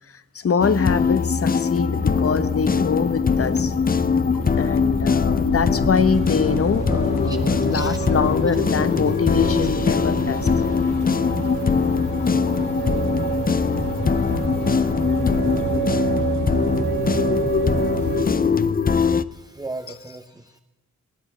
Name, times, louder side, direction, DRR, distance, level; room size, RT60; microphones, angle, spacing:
voice 1, 0.3-3.7 4.6-10.5, left 6 dB, 45° left, 14 dB, 1.1 m, -24 dB
sound 1, 0.6-19.2, left 5 dB, 30° left, 0.6 m, -22 dB
sound 2, 1.9-18.7, left 3 dB, 90° left, 2.4 m, -31 dB
sound 3, 5.9-18.2, right 7 dB, 80° right, 2.9 m, -29 dB
voice 2, 7.3-8.0 19.3-20.6, right 2 dB, 10° right, 7 dB, 0.8 m, -37 dB
18.0 x 9.3 x 7.6 m, 1.1 s
cardioid pair, 65°, 31 cm